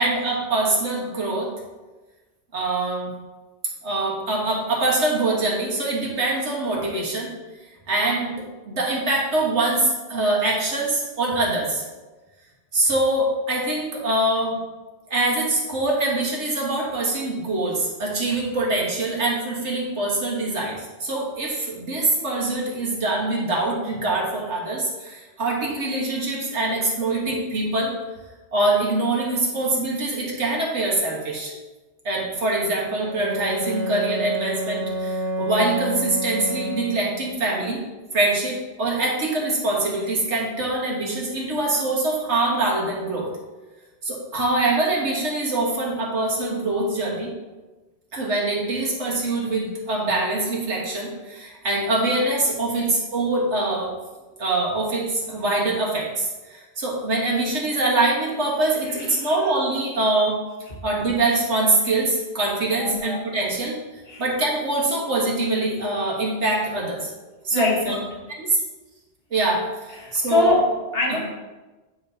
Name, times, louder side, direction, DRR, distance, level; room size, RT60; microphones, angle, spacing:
voice 1, 0.0-1.5 2.5-3.1 3.8-7.3 7.9-11.9 12.7-14.6 15.1-27.9 28.5-31.5 32.1-37.8 38.1-43.3 44.0-47.3 48.1-53.9 54.4-60.4 60.8-63.8 64.2-67.1 67.4-68.0 68.4-68.6 69.3-70.6 71.1-71.2, right 2 dB, 90° right, -3 dB, 1.8 m, -24 dB
Bowed string instrument, 32.9-37.4, right 1 dB, 65° right, 1.4 m, -29 dB
voice 2, 58.8-59.4 60.7-60.8 62.7-63.1 64.1-64.2 67.5-68.1 69.9-71.2, left 2 dB, 60° left, -2 dB, 1.7 m, -24 dB
8.8 x 5.1 x 2.8 m, 1.2 s
omnidirectional pair, 1.1 m